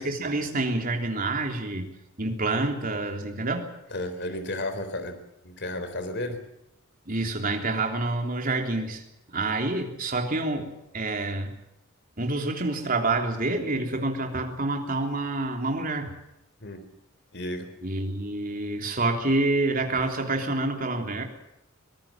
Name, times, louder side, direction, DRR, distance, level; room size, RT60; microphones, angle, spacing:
voice 1, 0.0-3.7 7.1-9.0 9.3-11.5 12.2-16.1 17.8-21.2, right 2 dB, 45° right, 3 dB, 3.4 m, -28 dB
voice 2, 3.9-6.4 16.6-16.8 17.3-17.7, left 1 dB, 55° left, 9 dB, 3.9 m, -33 dB
24.0 x 18.5 x 7.4 m, 0.87 s
head